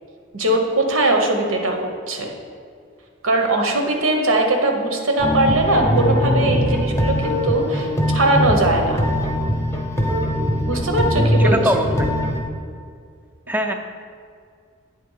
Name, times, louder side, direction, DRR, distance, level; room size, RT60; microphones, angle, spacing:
voice 1, 0.3-2.3 3.2-9.0 10.6-11.6, right 2 dB, 85° right, 3 dB, 1.0 m, -20 dB
sound 1, 5.2-12.4, equal, 15° left, 0.8 m, -21 dB
voice 2, 11.4-12.1 13.5-13.7, equal, 10° right, 5 dB, 0.4 m, -22 dB
8.5 x 3.6 x 5.5 m, 2.1 s
head